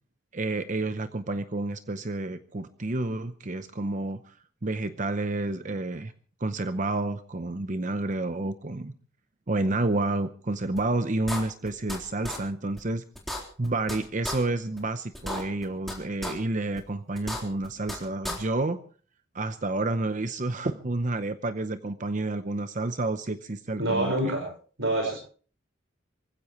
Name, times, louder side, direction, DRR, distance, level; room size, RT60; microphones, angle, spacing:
voice 1, 0.3-4.4 4.6-6.1 6.4-8.9 9.5-13.0 13.6-18.8 19.3-24.3, right 2 dB, 40° right, 10 dB, 0.8 m, -30 dB
sound 1, 10.8-10.9 11.3-12.0 12.2-12.4 12.8-12.9 13.1-14.0 14.2-14.4 14.8-14.9 15.1-15.9 16.2-16.3 16.8-16.9 17.1-18.0 18.2-18.4, left 1 dB, ahead, 3.8 m, -33 dB
voice 2, 23.8-24.4 24.8-25.1, right 1 dB, 70° right, 3 dB, 5.0 m, -26 dB
25.0 x 15.5 x 3.1 m, 0.42 s
head